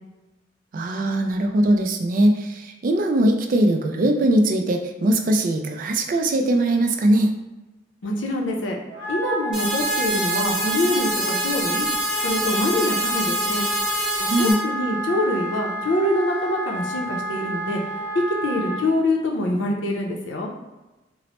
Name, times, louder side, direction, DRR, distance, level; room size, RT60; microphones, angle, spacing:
voice 1, 0.7-7.3 14.3-14.6, right 1 dB, 45° right, 4 dB, 0.3 m, -20 dB
voice 2, 8.0-8.8 9.1-11.9 12.2-13.7 14.2-17.8 18.1-20.5, left 1 dB, 90° left, 0 dB, 0.5 m, -25 dB
Wind instrument woodwind instrument, 8.9-18.8, right 1 dB, 60° left, 1.4 m, -29 dB
sound 1, 9.5-14.5, right 1 dB, 5° right, 0.5 m, -26 dB
3.0 x 2.0 x 2.9 m, 1.1 s
head